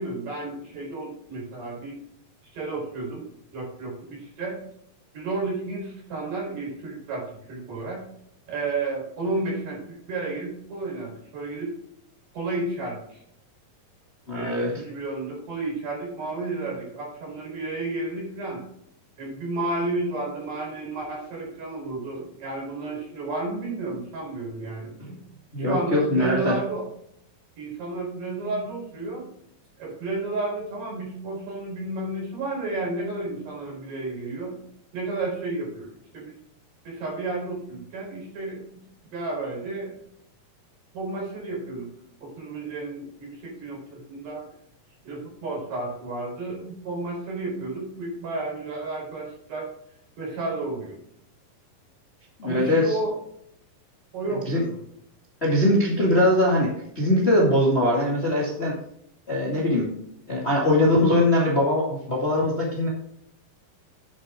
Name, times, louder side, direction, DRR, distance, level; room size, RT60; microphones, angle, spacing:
voice 1, 0.0-2.0 2.5-3.2 3.5-4.6 5.1-8.0 8.5-11.7 12.3-13.2 14.3-18.6 19.2-24.9 25.6-26.9 27.6-29.3 29.8-34.6 34.9-36.4 36.8-38.8 39.1-40.0 40.9-41.9 42.2-44.5 45.0-49.7 50.2-51.0 52.4-53.2 54.1-54.8, right 2 dB, 65° right, -1 dB, 6.0 m, -32 dB
voice 2, 14.3-14.8 25.0-25.2 25.5-26.5 52.4-53.0 54.3-54.6 55.4-58.8 59.3-59.9 60.3-62.9, left 1 dB, 25° left, -2 dB, 1.7 m, -22 dB
11.0 x 7.6 x 3.6 m, 0.71 s
omnidirectional pair, 4.1 m